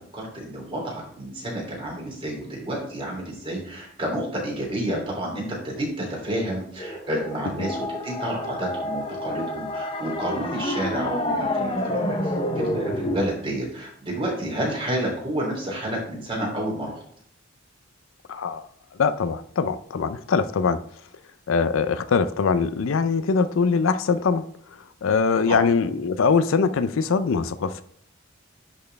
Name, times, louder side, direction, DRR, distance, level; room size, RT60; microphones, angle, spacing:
voice 1, 0.1-17.0 25.5-25.6, right 1 dB, 25° right, -3 dB, 3.0 m, -30 dB
sound 1, 6.8-13.3, left 1 dB, 25° left, 0.7 m, -28 dB
voice 2, 18.3-18.6 19.0-20.8 21.5-24.4 25.0-27.8, left 5 dB, 75° left, 12 dB, 0.4 m, -22 dB
10.5 x 4.3 x 3.4 m, 0.66 s
head